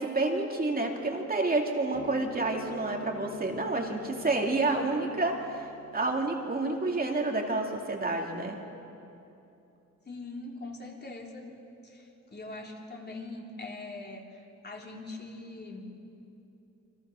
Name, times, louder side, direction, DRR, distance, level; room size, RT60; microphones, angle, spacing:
voice 1, 0.0-8.6, right 2 dB, 30° right, 1 dB, 2.5 m, -29 dB
sound 1, 1.9-8.6, left 2 dB, 75° left, 7.8 m, -48 dB
voice 2, 10.1-11.5 11.8-15.9, left 2 dB, 35° left, 0 dB, 3.5 m, -42 dB
29.0 x 25.0 x 6.4 m, 2.8 s
wide cardioid pair, 140°, 30 cm